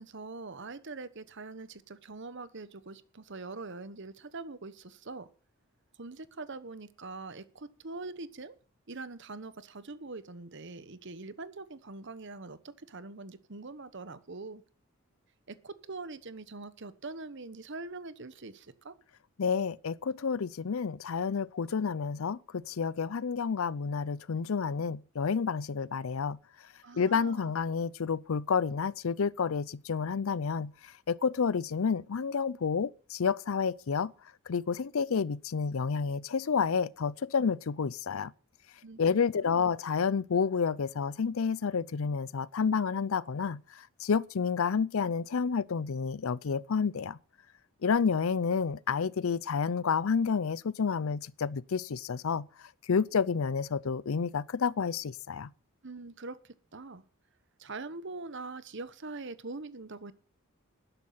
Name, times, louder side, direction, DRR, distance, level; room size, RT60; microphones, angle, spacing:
voice 1, 0.0-5.3 6.0-8.6 8.9-14.6 15.5-18.9 26.8-27.6 38.8-39.7 55.8-56.4 56.7-57.0 57.6-60.1, right 3 dB, 55° right, 1.1 m, -43 dB
voice 2, 19.4-26.4 27.0-34.1 34.5-38.3 39.0-43.6 44.0-47.2 47.8-52.5 52.9-55.5, left 5 dB, 70° left, 0.5 m, -30 dB
12.0 x 11.0 x 5.6 m
head